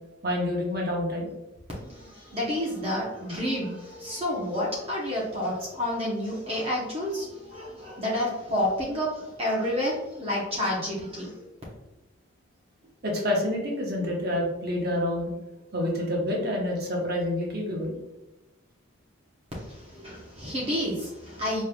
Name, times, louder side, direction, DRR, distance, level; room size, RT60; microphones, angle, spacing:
voice 1, 0.2-1.3 13.0-15.3 15.7-17.9, left 1 dB, 50° right, -1 dB, 1.0 m, -28 dB
voice 2, 1.7-11.5 19.6-21.6, left 1 dB, 30° right, -5 dB, 0.8 m, -30 dB
5.1 x 3.1 x 2.3 m, 1.0 s
head